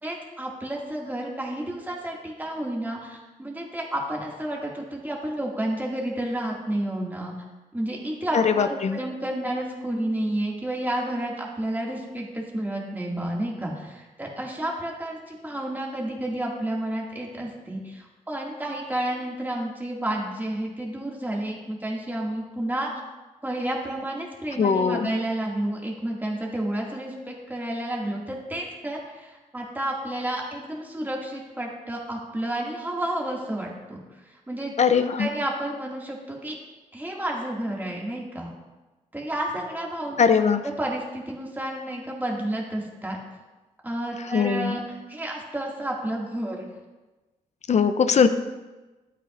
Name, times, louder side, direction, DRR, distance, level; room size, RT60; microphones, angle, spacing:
voice 1, 0.0-7.3 7.7-22.9 23.4-36.5 36.9-38.5 39.1-40.2 40.8-43.2 43.8-46.7, right 1 dB, 15° right, -2 dB, 2.2 m, -31 dB
voice 2, 8.3-9.0 24.6-25.1 34.8-35.3 40.2-40.6 44.3-44.7 47.7-48.3, left 6 dB, 55° left, 11 dB, 0.6 m, -20 dB
12.0 x 8.7 x 2.6 m, 1.2 s
cardioid pair, 70°, 14 cm